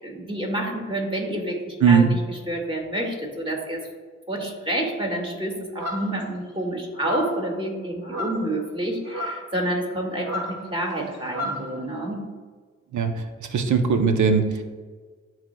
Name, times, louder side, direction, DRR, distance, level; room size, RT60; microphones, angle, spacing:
voice 1, 0.0-2.2 2.5-3.8 4.3-12.2, right 1 dB, 15° right, 0 dB, 2.0 m, -28 dB
voice 2, 1.8-2.1 12.9-14.6, right 6 dB, 80° right, 6 dB, 0.8 m, -20 dB
sound 1, 5.8-6.2 6.9-7.4 8.0-8.5 9.0-9.4 10.2-11.6, left 1 dB, 55° right, 1.8 m, -32 dB
11.0 x 4.6 x 2.3 m, 1.5 s
cardioid pair, 50°, 29 cm